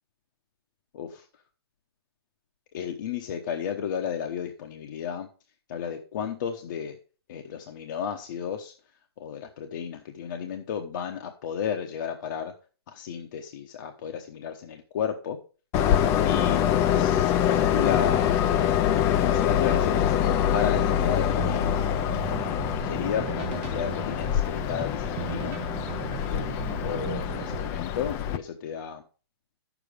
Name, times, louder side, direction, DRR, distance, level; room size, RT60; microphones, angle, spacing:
voice 1, 2.7-5.3 5.7-7.0 7.3-8.7 9.2-12.5 12.9-15.4 15.8-18.4 19.2-21.8 22.3-25.9 26.3-29.0, left 8 dB, 50° left, 3 dB, 1.0 m, -33 dB
Train, 15.7-28.4, left 10 dB, 20° left, 0.4 m, -25 dB
sound 1, 20.6-27.7, right 12 dB, 30° right, 0.6 m, -38 dB
9.0 x 7.1 x 5.0 m, 0.37 s
hypercardioid pair, 160°, 13 cm